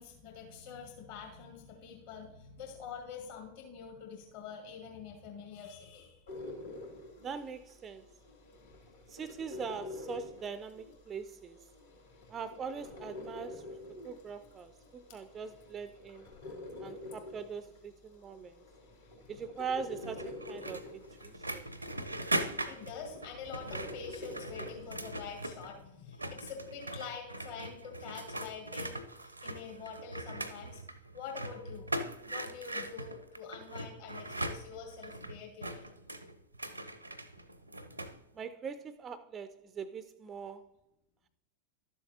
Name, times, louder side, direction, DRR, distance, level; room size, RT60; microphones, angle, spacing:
voice 1, 0.0-6.2 17.1-17.2 19.2-19.3 22.6-30.8 31.1-31.9 32.3-35.9, left 6 dB, 50° left, 1.9 m, -46 dB
sound 1, 6.3-25.4, left 2 dB, 70° left, 3.0 m, -48 dB
voice 2, 7.2-8.1 9.1-11.6 12.3-13.6 14.0-16.3 16.8-18.5 19.3-21.7 38.4-40.7, right 6 dB, 25° right, 0.3 m, -42 dB
sound 2, 20.0-25.8 26.1-38.2, right 1 dB, 85° right, 0.6 m, -40 dB
12.0 x 7.1 x 2.8 m
figure-of-eight pair, 90°, 0 cm